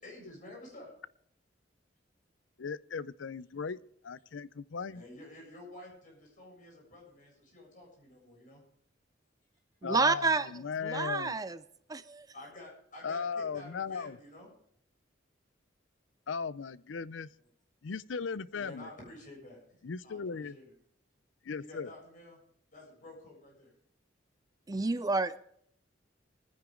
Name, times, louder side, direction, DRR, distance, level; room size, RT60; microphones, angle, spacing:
voice 1, 0.0-0.9 4.9-8.6 12.3-14.5 18.5-19.6 20.0-20.7 21.6-22.4 22.7-23.7, left 1 dB, 45° left, -2 dB, 7.3 m, -50 dB
voice 2, 2.6-5.0 9.8-11.3 13.0-14.2 16.3-17.3 17.8-18.9 19.8-20.5 21.4-21.9, left 5 dB, 90° left, 17 dB, 0.5 m, -37 dB
voice 3, 9.8-10.5 10.8-11.6 11.9-12.3 24.7-25.4, right 3 dB, 20° right, 14 dB, 0.4 m, -29 dB
23.0 x 10.0 x 3.8 m, 0.67 s
head